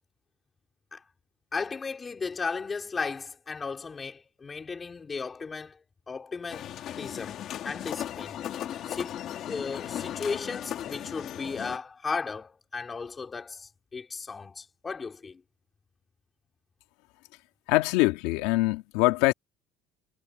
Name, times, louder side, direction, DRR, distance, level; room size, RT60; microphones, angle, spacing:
voice 1, 1.5-5.8 6.1-6.7 7.0-8.4 8.9-15.4, left 4 dB, 20° left, 4.8 m, -35 dB
sound 1, 6.5-11.8, left 11 dB, 50° left, 2.3 m, -36 dB
voice 2, 17.7-19.3, left 21 dB, 85° left, 2.3 m, -23 dB
cardioid pair, 125°, 0 cm